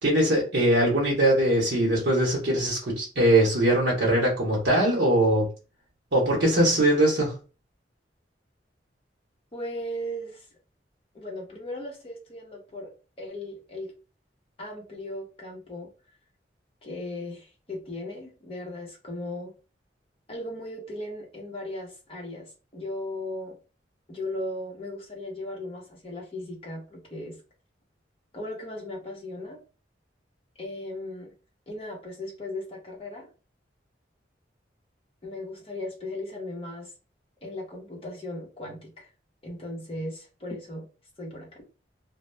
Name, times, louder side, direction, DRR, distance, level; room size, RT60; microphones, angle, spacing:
voice 1, 0.0-5.5 6.1-7.3, right 1 dB, 70° right, 0.8 m, -21 dB
voice 2, 9.5-10.5 11.1-12.9 13.2-13.9 14.6-15.9 16.8-19.5 20.3-23.6 24.1-27.4 28.3-29.6 30.6-31.3 31.7-33.3 35.2-36.9 37.4-39.1 39.4-40.8 41.2-41.5, left 1 dB, 30° left, 0.8 m, -37 dB
2.2 x 2.1 x 3.0 m
head